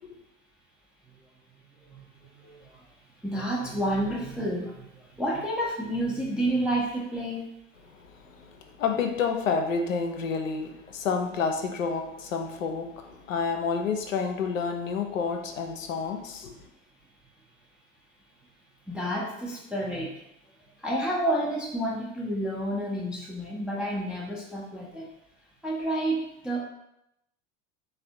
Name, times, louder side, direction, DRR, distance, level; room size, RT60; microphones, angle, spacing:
voice 1, 1.9-2.7 3.2-4.8 5.2-7.4 18.9-20.1 20.8-25.1 25.6-26.6, right 1 dB, ahead, -4 dB, 0.4 m, -30 dB
voice 2, 8.3-16.5, left 5 dB, 85° left, 5 dB, 0.5 m, -29 dB
3.2 x 2.2 x 2.7 m, 0.82 s
hypercardioid pair, 75°, 38 cm